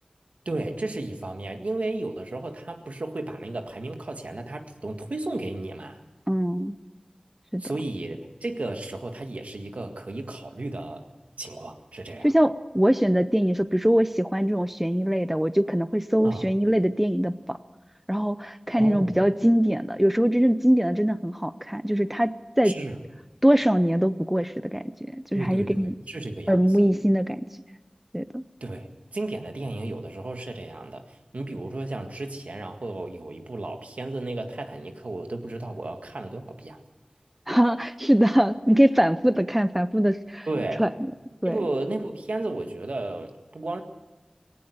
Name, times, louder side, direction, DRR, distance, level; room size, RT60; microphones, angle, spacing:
voice 1, 0.4-6.0 7.6-11.1 11.4-12.3 16.2-16.4 18.8-19.1 22.6-23.0 25.3-26.9 28.6-36.8 40.5-40.9 41.4-43.8, right 2 dB, 85° right, 5 dB, 1.8 m, -33 dB
voice 2, 6.3-6.8 7.5-7.6 12.2-17.6 18.1-22.8 23.4-24.8 25.1-25.9 26.5-27.5 28.1-28.4 37.5-40.5 40.8-40.9 41.4-41.6, equal, 10° right, 13 dB, 0.7 m, -22 dB
18.5 x 18.0 x 8.0 m, 1.1 s
wide cardioid pair, 50°, 2 cm